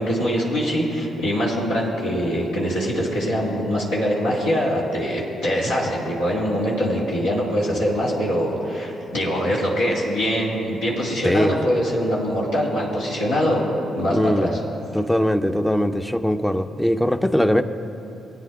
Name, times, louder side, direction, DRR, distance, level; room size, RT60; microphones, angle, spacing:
voice 1, 0.0-13.6 13.9-14.6, equal, 85° left, -7 dB, 2.0 m, -23 dB
voice 2, 11.2-11.6 14.1-14.5 14.9-17.6, equal, 5° left, 10 dB, 0.6 m, -21 dB
19.5 x 9.3 x 2.3 m, 2.8 s
hypercardioid pair, 45°, 0 cm